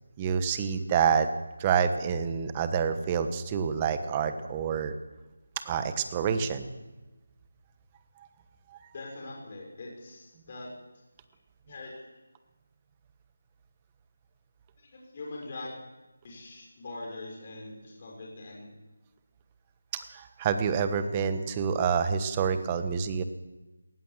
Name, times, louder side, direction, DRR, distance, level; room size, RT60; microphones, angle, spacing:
voice 1, 0.2-1.3 1.6-4.9 5.6-6.7 8.7-8.8 19.9-23.2, right 7 dB, 15° right, 9 dB, 1.2 m, -27 dB
voice 2, 8.9-10.7 11.6-11.9 14.8-15.7 16.2-18.6, left 2 dB, 35° left, -1 dB, 5.8 m, -42 dB
20.5 x 19.0 x 7.4 m, 1.1 s
figure-of-eight pair, 170°, 0 cm